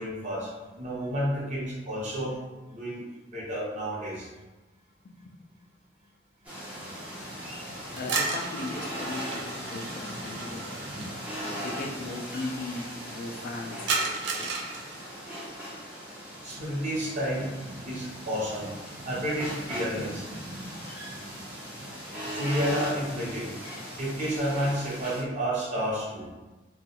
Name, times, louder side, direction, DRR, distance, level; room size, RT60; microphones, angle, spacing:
voice 1, 0.0-2.4 2.7-3.0 3.3-4.3 16.4-17.6 17.8-18.7 19.0-20.2 22.2-23.5 24.0-26.3, equal, 40° right, -7 dB, 0.9 m, -30 dB
sound 1, 6.4-25.2, equal, 10° right, 0.5 m, -39 dB
voice 2, 8.0-10.8 11.3-13.9 14.3-14.5, left 2 dB, 50° left, 2 dB, 0.3 m, -38 dB
sound 2, 8.0-11.1 13.9-15.1, right 4 dB, 75° right, 0.4 m, -33 dB
2.3 x 2.3 x 2.9 m, 1.1 s
head